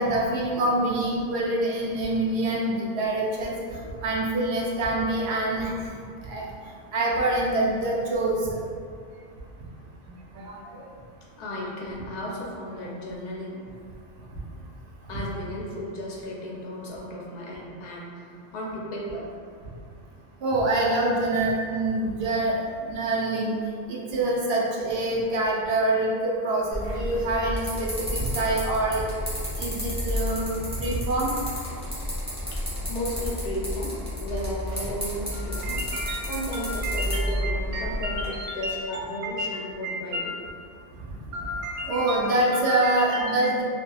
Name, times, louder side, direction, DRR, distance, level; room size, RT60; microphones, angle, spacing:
voice 1, 0.0-6.0 6.3-6.5 6.9-8.4 10.3-10.6 20.4-22.6 22.9-23.5 23.9-29.1 29.6-31.3 35.3-39.5 39.8-40.4 41.3-43.6, right 1 dB, 85° right, -3 dB, 0.8 m, -26 dB
voice 2, 11.4-13.6 15.1-18.3 18.5-19.3 32.5-32.6 32.9-35.8 36.3-40.4 41.2-41.3, equal, 55° left, -4 dB, 0.6 m, -34 dB
sound 1, 26.7-38.3, left 1 dB, 5° right, 0.6 m, -31 dB
2.8 x 2.3 x 2.3 m, 2.2 s
omnidirectional pair, 1.1 m